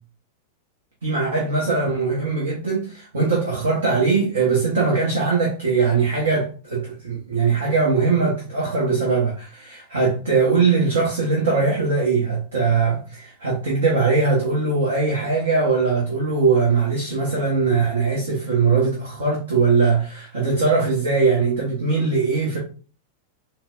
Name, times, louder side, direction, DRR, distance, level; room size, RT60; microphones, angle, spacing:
voice 1, 1.0-22.6, right 4 dB, 65° right, 0.9 m, -21 dB
4.2 x 2.2 x 2.4 m
figure-of-eight pair, 90°, 0 cm